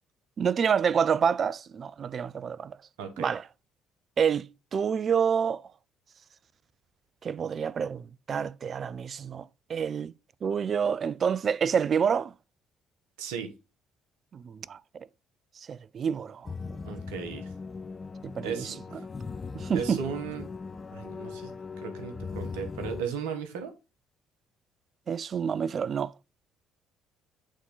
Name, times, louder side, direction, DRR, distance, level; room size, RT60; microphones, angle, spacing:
voice 1, 0.4-2.8 3.2-3.4 4.2-5.6 7.2-10.1 10.4-12.3 14.3-15.1 15.6-16.5 18.4-18.7 19.5-20.0 25.1-26.1, right 7 dB, 45° right, 0.4 m, -28 dB
voice 2, 3.0-3.3 13.2-13.5 16.8-17.5 18.4-19.0 19.7-20.5 20.9-23.7, right 7 dB, 80° right, 1.3 m, -36 dB
sound 1, 16.4-23.0, left 4 dB, 30° left, 0.7 m, -39 dB
8.2 x 3.7 x 3.7 m
hypercardioid pair, 55°, 0 cm